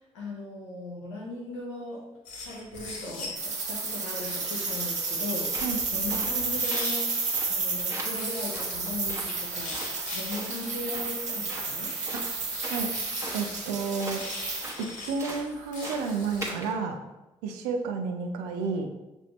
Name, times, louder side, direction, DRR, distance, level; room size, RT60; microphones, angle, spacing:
voice 1, 0.1-2.0 2.4-7.1 7.5-9.8 10.1-11.9, left 2 dB, 90° left, -3 dB, 0.8 m, -38 dB
sound 1, 2.2-3.6 4.2-7.8 8.1-16.5, left 2 dB, 65° left, 1.3 m, -42 dB
sound 2, 3.4-14.7, right 4 dB, 55° right, 1.1 m, -31 dB
sound 3, 5.5-5.8 6.1-6.4 6.7-7.0 7.3-7.6 7.9-8.3 8.5-9.4 9.7-9.9 10.3-10.5 10.9-11.2 11.5-11.7 12.1-12.9 13.2-13.5 14.0-14.3 14.6-15.5 15.8-16.1 16.4-16.7, right 1 dB, 20° right, 1.1 m, -39 dB
voice 2, 13.3-14.2 14.8-17.0 17.4-18.9, right 4 dB, 80° right, 4 dB, 0.5 m, -31 dB
6.0 x 2.7 x 3.0 m, 1.0 s
hypercardioid pair, 45°, 15 cm